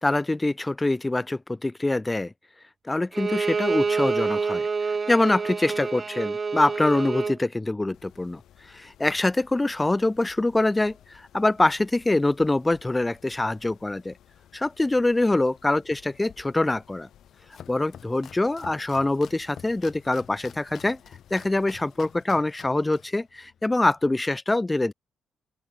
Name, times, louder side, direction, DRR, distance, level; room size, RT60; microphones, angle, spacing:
voice 1, 0.0-2.3 2.8-8.4 8.7-14.1 14.5-17.1 17.7-21.0 21.3-24.9, left 2 dB, 15° left, 0.8 m, -24 dB
Bowed string instrument, 3.1-7.4, right 5 dB, 35° right, 2.0 m, -27 dB
Mechanisms, 7.9-22.2, left 11 dB, 80° left, 7.8 m, -56 dB
Domestic sounds home sounds, 17.1-24.1, left 8 dB, 60° left, 5.6 m, -49 dB
open air
cardioid pair, 100°, 0 cm